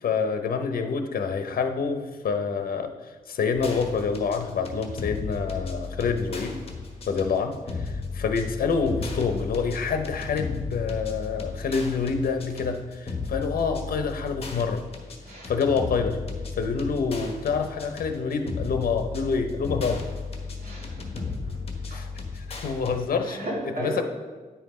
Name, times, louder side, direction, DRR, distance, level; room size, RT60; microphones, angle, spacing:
voice 1, 0.0-2.9 3.3-6.5 7.1-14.8 15.5-16.2 16.6-20.0 21.9-22.1 22.3-23.4 23.8-24.0, left 5 dB, 70° left, 6 dB, 0.8 m, -27 dB
sound 1, 3.5-23.0, left 4 dB, 40° left, 1.2 m, -35 dB
voice 2, 15.2-15.5 20.6-21.6 21.9-22.1 22.7-22.8 23.2-24.0, right 1 dB, 85° right, -3 dB, 2.8 m, -35 dB
10.0 x 5.7 x 4.2 m, 1.3 s
wide cardioid pair, 150°, 15 cm